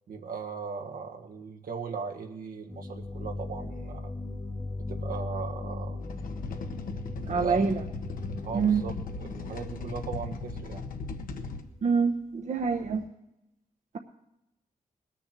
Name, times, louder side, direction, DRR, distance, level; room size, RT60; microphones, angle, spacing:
voice 1, 0.1-4.1 4.8-6.0 7.1-7.7 8.4-10.8, right 5 dB, 80° right, 3 dB, 1.5 m, -38 dB
sound 1, 2.7-12.1 12.6-13.1, left 2 dB, 25° left, 0.7 m, -39 dB
sound 2, 6.0-11.6, left 4 dB, 75° left, 1.3 m, -38 dB
voice 2, 7.3-7.7 8.5-8.8 11.8-13.0, right 5 dB, 55° right, 4 dB, 0.9 m, -25 dB
19.5 x 7.0 x 7.5 m, 0.89 s
cardioid pair, 95°, 14 cm